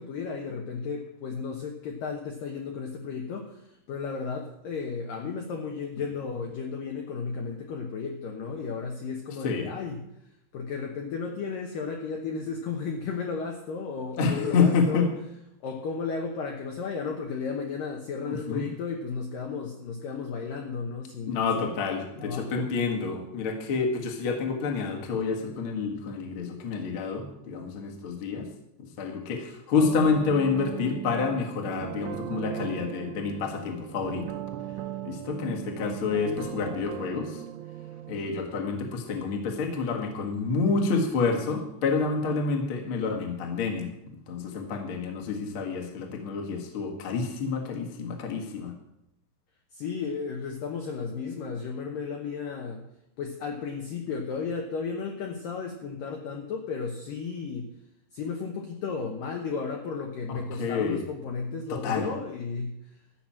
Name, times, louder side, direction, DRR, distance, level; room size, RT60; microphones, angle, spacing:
voice 1, 0.0-10.0 10.5-15.1 15.6-21.7 22.2-22.6 49.7-52.9 53.2-57.7 58.1-62.8, left 5 dB, 75° left, 2 dB, 2.1 m, -34 dB
voice 2, 14.2-15.1 18.2-18.6 21.3-28.5 28.8-34.2 35.0-37.4 38.1-43.9 44.3-48.7 60.3-61.0 61.7-62.1, left 4 dB, 55° left, 2 dB, 1.5 m, -28 dB
sound 1, 29.8-38.3, right 12 dB, 85° right, 3.1 m, -38 dB
13.5 x 6.0 x 8.6 m, 0.80 s
omnidirectional pair, 5.3 m